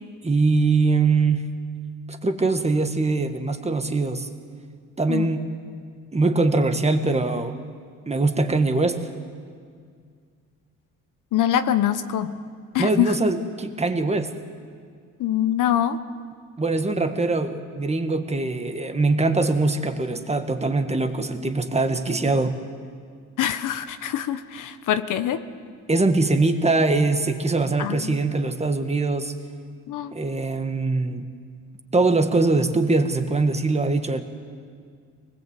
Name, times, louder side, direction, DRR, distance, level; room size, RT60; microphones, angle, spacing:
voice 1, 0.2-1.5 2.1-4.3 5.0-5.4 6.1-7.6 8.1-9.1 12.8-14.3 16.6-22.6 25.9-29.3 30.1-31.2 31.9-34.2, right 3 dB, 20° right, 7 dB, 1.7 m, -22 dB
voice 2, 11.3-12.3 12.7-13.1 15.2-16.0 23.4-25.4 27.8-28.2 29.9-30.1, left 11 dB, 70° left, 10 dB, 1.1 m, -24 dB
23.5 x 20.0 x 8.2 m, 2.1 s
cardioid pair, 95°, 32 cm